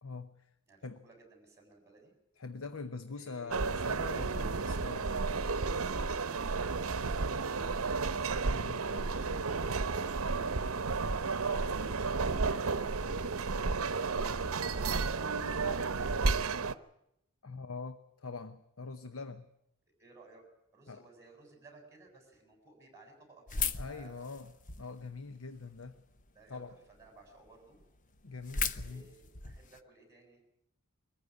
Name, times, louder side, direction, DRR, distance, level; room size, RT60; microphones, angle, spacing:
voice 1, 0.0-0.5 0.8-1.0 2.4-5.2 8.4-9.3 17.4-19.5 20.9-21.0 23.8-26.0 26.5-26.8 28.2-29.1, left 4 dB, 70° left, 10 dB, 0.9 m, -44 dB
voice 2, 0.7-2.1 3.1-3.7 20.0-20.4 20.7-24.3 26.3-27.8 28.8-30.4, right 3 dB, 15° right, 2 dB, 7.2 m, -57 dB
sound 1, 3.5-16.7, right 4 dB, 80° right, 0.8 m, -32 dB
sound 2, 23.5-25.0 25.5-26.2 26.7-26.8 27.0-27.1 27.5-27.6 27.7-29.8, left 6 dB, 40° left, 0.9 m, -36 dB
23.0 x 14.5 x 9.9 m, 0.81 s
head